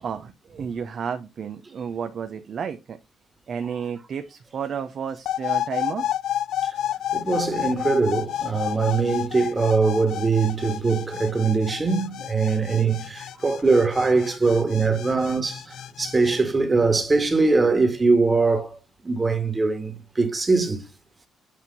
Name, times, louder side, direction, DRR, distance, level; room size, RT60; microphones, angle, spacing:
voice 1, 0.0-3.0 3.5-6.1 7.2-7.5, right 7 dB, 55° right, 0.7 m, -32 dB
sound 1, 5.3-16.4, left 11 dB, 75° left, 0.3 m, -30 dB
voice 2, 7.1-20.8, right 4 dB, 25° right, 1.7 m, -22 dB
8.3 x 2.8 x 5.4 m
cardioid pair, 90°, 0 cm